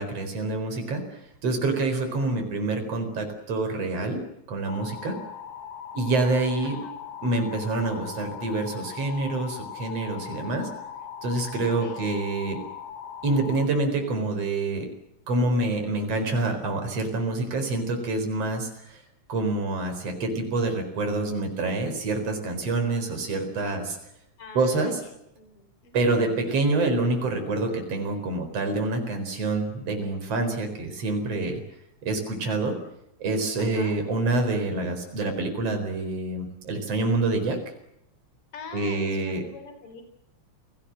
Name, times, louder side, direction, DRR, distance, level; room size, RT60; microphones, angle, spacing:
voice 1, 0.0-4.2 4.5-5.2 5.9-6.8 7.2-10.7 11.2-12.6 13.2-14.9 15.3-19.0 19.3-24.0 24.5-25.0 25.9-31.6 32.0-32.8 33.2-37.6 38.7-39.4, right 2 dB, 55° right, 5 dB, 5.4 m, -27 dB
voice 2, 2.1-2.4 6.6-6.9 11.8-12.0 24.4-25.1 25.4-26.3 33.6-33.9 38.5-40.0, left 4 dB, 45° left, 7 dB, 5.1 m, -44 dB
sound 1, 4.7-13.7, left 8 dB, 80° left, 2.8 m, -40 dB
29.0 x 19.0 x 7.7 m, 0.81 s
omnidirectional pair, 3.4 m